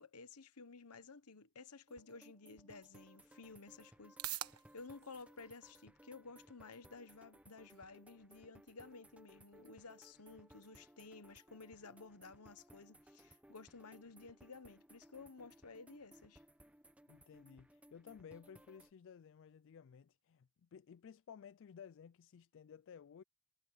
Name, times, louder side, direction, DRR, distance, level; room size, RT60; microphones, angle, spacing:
voice 1, 0.0-16.4, left 4 dB, 85° left, 1.2 m, -54 dB
sound 1, 1.9-18.9, right 1 dB, 5° right, 1.1 m, -63 dB
sound 2, 3.6-19.7, right 13 dB, 80° right, 1.3 m, -56 dB
voice 2, 17.1-23.2, left 7 dB, 60° left, 0.4 m, -56 dB
head